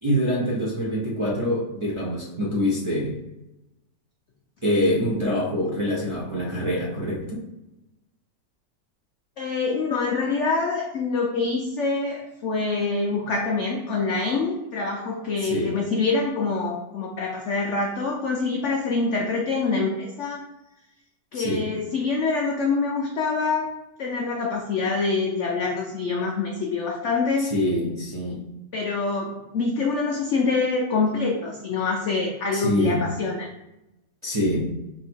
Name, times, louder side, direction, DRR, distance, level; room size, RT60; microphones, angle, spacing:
voice 1, 0.0-3.2 4.6-7.4 15.4-15.7 21.3-21.7 27.4-28.4 32.5-33.1 34.2-34.7, equal, 30° right, -6 dB, 0.6 m, -25 dB
voice 2, 9.4-20.4 21.3-23.7 24.0-27.5 28.7-33.5, left 4 dB, 85° left, 0 dB, 0.6 m, -25 dB
4.1 x 2.7 x 4.4 m, 0.94 s
omnidirectional pair, 1.9 m